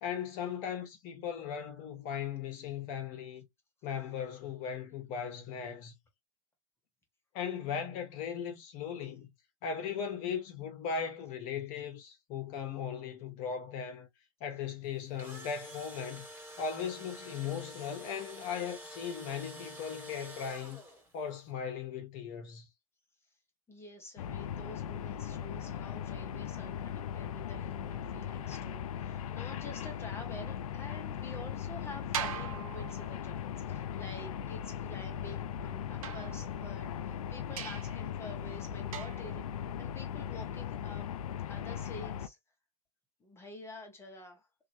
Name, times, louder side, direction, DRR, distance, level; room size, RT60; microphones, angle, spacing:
voice 1, 0.0-3.4 3.8-5.9 7.3-9.3 9.6-14.1 14.4-16.2 16.6-20.8 21.1-22.7, left 7 dB, 50° left, 1.1 m, -38 dB
Engine / Drill, 14.9-21.2, equal, 10° right, 1.6 m, -48 dB
voice 2, 23.7-41.1 41.5-42.4 43.2-44.5, left 2 dB, 15° left, 1.2 m, -49 dB
sound 1, 24.2-42.3, left 9 dB, 85° left, 0.4 m, -39 dB
sound 2, 32.1-33.5 36.0-36.9 37.6-38.0 38.9-39.4, right 8 dB, 80° right, 0.7 m, -41 dB
3.0 x 2.6 x 2.7 m
hypercardioid pair, 115°, 18 cm